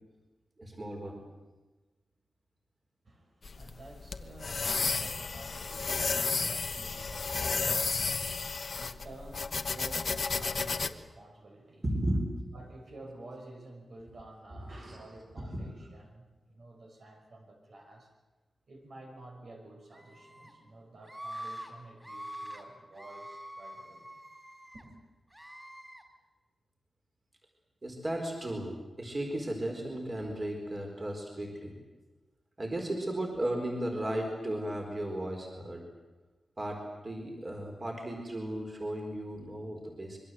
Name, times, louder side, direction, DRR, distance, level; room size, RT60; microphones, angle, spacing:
voice 1, 0.6-1.2 11.8-12.2 14.9-15.0 15.4-15.5 27.8-31.7 32.6-35.8 36.6-40.2, right 1 dB, 30° right, 1 dB, 4.5 m, -35 dB
voice 2, 3.0-11.9 12.5-18.1 18.7-24.2 24.7-25.0, right 2 dB, 60° right, 1 dB, 5.8 m, -51 dB
sound 1, 3.4-10.9, left 4 dB, 50° left, 1.1 m, -32 dB
Screaming, 19.9-20.5 21.0-21.7 22.0-22.6 22.9-24.8 25.3-26.0, equal, 10° right, 4.2 m, -45 dB
26.0 x 23.5 x 7.9 m, 1.2 s
wide cardioid pair, 175°, 0 cm